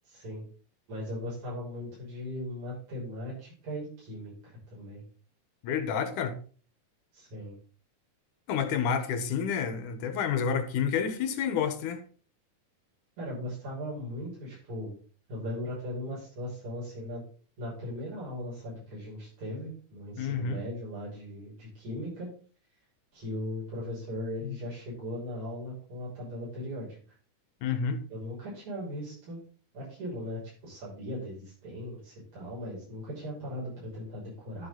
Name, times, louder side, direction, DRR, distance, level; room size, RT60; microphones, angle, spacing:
voice 1, 0.0-0.4 0.9-5.0 5.9-6.0 7.1-7.5 13.2-14.9 15.3-17.2 17.6-22.3 23.1-27.0 28.1-29.4 29.7-34.7, left 1 dB, 65° right, 7.9 m, -38 dB
voice 2, 5.6-6.3 8.5-12.0 20.2-20.6 24.4-24.6 27.6-28.0, left 7 dB, 85° left, 2.8 m, -29 dB
12.0 x 7.0 x 3.9 m
omnidirectional pair, 3.5 m